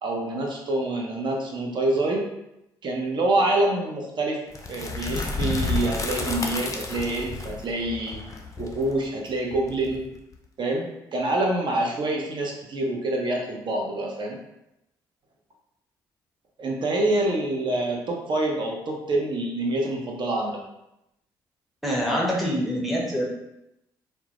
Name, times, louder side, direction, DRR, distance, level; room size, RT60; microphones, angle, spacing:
voice 1, 0.0-2.3 2.8-4.4 4.7-8.2 8.6-10.1 10.6-14.4 16.6-20.6, right 2 dB, 45° right, 0 dB, 0.6 m, -26 dB
sound 1, 4.5-10.3, left 3 dB, 30° left, 0.4 m, -31 dB
voice 2, 21.8-23.2, equal, ahead, -3 dB, 0.7 m, -25 dB
2.1 x 2.0 x 2.8 m, 0.86 s
hypercardioid pair, 45°, 11 cm